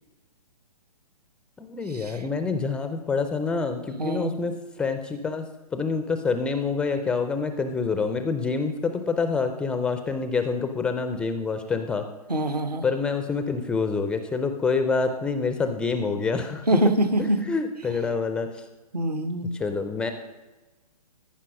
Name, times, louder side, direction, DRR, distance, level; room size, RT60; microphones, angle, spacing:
voice 1, 1.6-12.1 12.8-16.6 17.5-18.6 19.5-20.1, left 4 dB, 5° left, 8 dB, 0.3 m, -27 dB
voice 2, 4.0-4.3 12.3-12.8 16.7-17.4 18.9-19.5, right 1 dB, 80° right, 10 dB, 1.3 m, -24 dB
14.5 x 5.6 x 6.2 m, 1.1 s
figure-of-eight pair, 130°, 20 cm